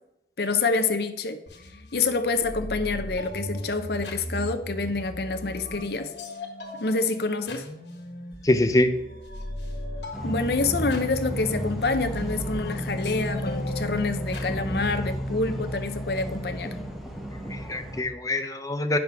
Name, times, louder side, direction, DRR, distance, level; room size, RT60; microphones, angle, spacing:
voice 1, 0.4-1.4 1.9-6.1 6.8-7.6 10.2-16.8, left 3 dB, 60° left, 8 dB, 0.7 m, -27 dB
sound 1, 1.5-15.2, left 1 dB, 75° left, 1.6 m, -37 dB
voice 2, 8.4-8.9 17.5-19.0, left 1 dB, 20° left, 7 dB, 0.5 m, -24 dB
sound 2, 10.1-18.0, equal, ahead, 0.9 m, -33 dB
8.9 x 6.3 x 3.5 m, 0.90 s
head